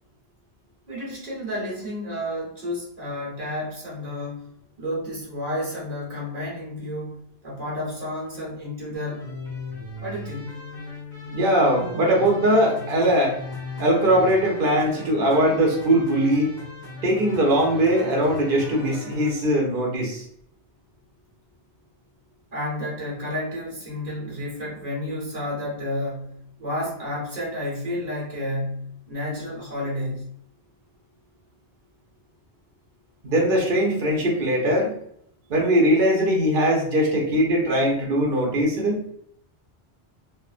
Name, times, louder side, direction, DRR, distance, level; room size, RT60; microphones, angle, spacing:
voice 1, 0.9-4.5 4.8-9.3 10.0-10.6 22.5-30.3, left 1 dB, 40° right, -4 dB, 1.3 m, -31 dB
The Run - Music, 8.9-19.3, left 2 dB, 45° left, 0.9 m, -37 dB
voice 2, 11.3-13.4 13.8-16.5 17.0-20.2 33.2-34.9 35.5-39.0, equal, 55° right, -1 dB, 1.0 m, -20 dB
3.4 x 2.1 x 2.4 m, 0.68 s
omnidirectional pair, 1.1 m